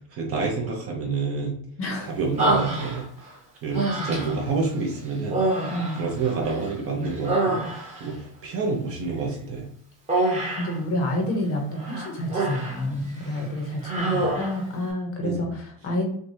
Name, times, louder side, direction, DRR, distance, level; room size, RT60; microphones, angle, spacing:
voice 1, 0.0-1.6 2.0-3.1 3.6-5.6 6.0-7.6 8.0-9.6 14.1-14.3 15.2-15.5, right 4 dB, 30° right, 0 dB, 0.6 m, -28 dB
voice 2, 1.8-2.1 3.8-3.9 5.7-6.1 10.6-16.1, left 1 dB, 30° left, 2 dB, 0.7 m, -29 dB
Human voice, 2.4-3.3 3.7-4.5 5.3-6.7 7.0-8.1 10.1-10.8 11.8-12.8 13.2-13.4 13.8-14.6, right 2 dB, 15° right, 0.9 m, -26 dB
6.2 x 2.2 x 2.7 m, 0.63 s
cardioid pair, 180°, 46 cm